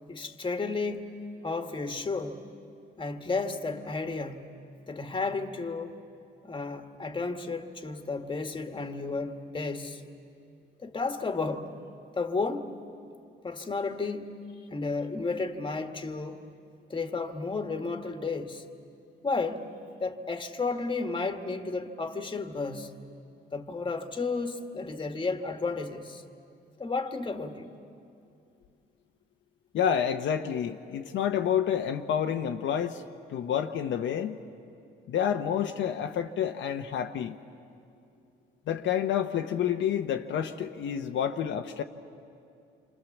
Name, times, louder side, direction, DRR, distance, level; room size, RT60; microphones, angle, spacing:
voice 1, 0.1-2.4 3.0-4.5 4.9-6.0 6.4-10.0 10.8-11.7 12.1-12.8 13.4-14.4 14.7-16.5 16.9-18.6 19.2-19.7 20.0-22.9 23.5-26.2 26.8-27.7, left 3 dB, 25° left, 1.7 m, -32 dB
voice 2, 29.7-33.0 33.3-34.4 35.1-37.4 38.7-41.8, left 9 dB, 75° left, 1.0 m, -29 dB
27.5 x 26.0 x 7.3 m
cardioid pair, 90°, 20 cm